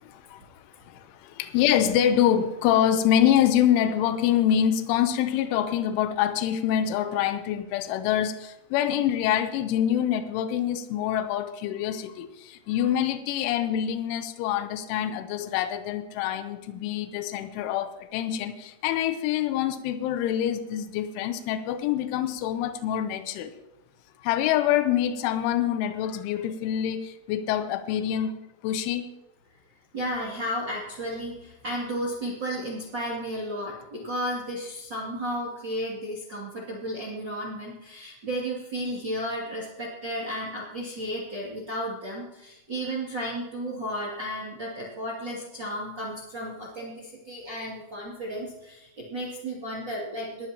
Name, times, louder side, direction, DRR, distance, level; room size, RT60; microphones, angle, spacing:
voice 1, 0.0-23.5 24.2-29.1, left 10 dB, 90° left, 9 dB, 3.2 m, -26 dB
voice 2, 29.9-50.5, equal, 35° right, -5 dB, 2.0 m, -33 dB
20.0 x 12.0 x 2.9 m, 0.96 s
omnidirectional pair, 5.6 m